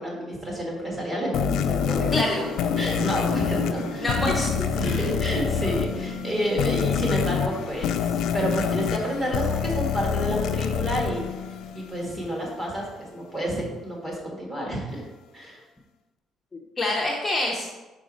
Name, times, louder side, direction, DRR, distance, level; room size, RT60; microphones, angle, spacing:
voice 1, 0.0-2.4 2.8-4.5 4.8-11.3 11.7-15.0 15.3-15.6, right 1 dB, 20° right, -2 dB, 1.7 m, -30 dB
sound 1, 1.2-9.0 9.4-9.5, right 2 dB, 90° right, 0.7 m, -39 dB
sound 2, 1.3-12.1, left 7 dB, 70° left, 0.4 m, -27 dB
voice 2, 4.0-5.0 16.8-17.7, left 2 dB, 15° left, -2 dB, 0.6 m, -26 dB
5.2 x 4.9 x 5.0 m, 1.1 s
cardioid pair, 180°, 0 cm